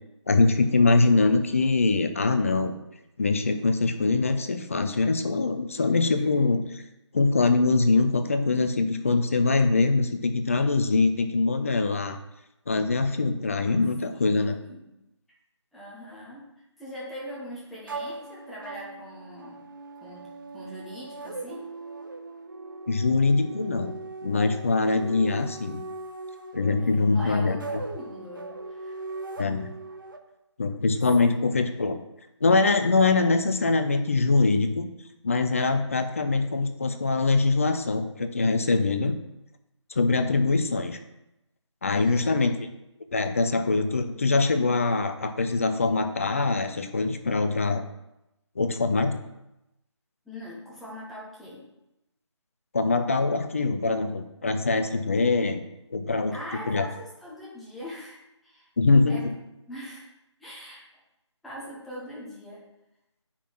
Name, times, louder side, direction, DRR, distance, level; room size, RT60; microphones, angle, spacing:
voice 1, 0.3-2.7 3.2-6.8 7.1-12.2 12.7-14.6 22.9-23.9 24.2-25.8 26.5-27.6 29.4-29.7 30.6-32.0 32.4-34.9 35.2-39.2 40.0-41.0 41.8-42.6 43.1-47.8 48.6-49.2 52.7-55.6 55.9-56.4 56.7-56.9 58.8-59.3, left 3 dB, 30° left, 7 dB, 0.7 m, -23 dB
voice 2, 13.6-15.0 15.7-16.5 16.8-19.6 20.0-21.7 26.8-29.0 41.9-42.4 50.2-51.7 56.3-58.7 59.1-59.3 59.7-60.1 60.4-60.8 61.4-62.6, equal, ahead, -7 dB, 0.9 m, -42 dB
sound 1, 17.9-30.2, right 3 dB, 45° right, 1.1 m, -39 dB
10.0 x 5.7 x 4.5 m, 0.90 s
figure-of-eight pair, 155°, 15 cm